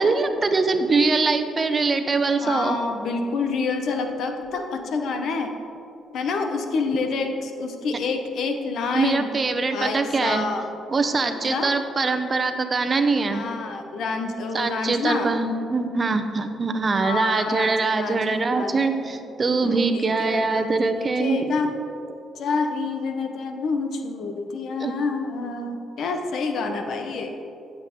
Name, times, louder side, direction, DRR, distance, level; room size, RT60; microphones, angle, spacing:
voice 1, 0.0-2.8 8.9-10.4 10.9-13.5 14.5-21.4 24.8-24.9, right 3 dB, 35° right, 7 dB, 0.8 m, -23 dB
voice 2, 2.4-5.5 6.1-9.3 9.7-10.6 11.2-11.7 13.3-15.3 16.9-19.3 19.6-21.7 22.4-27.3, left 4 dB, 70° left, 5 dB, 1.0 m, -28 dB
15.5 x 7.4 x 3.8 m, 2.7 s
cardioid pair, 90°, 0 cm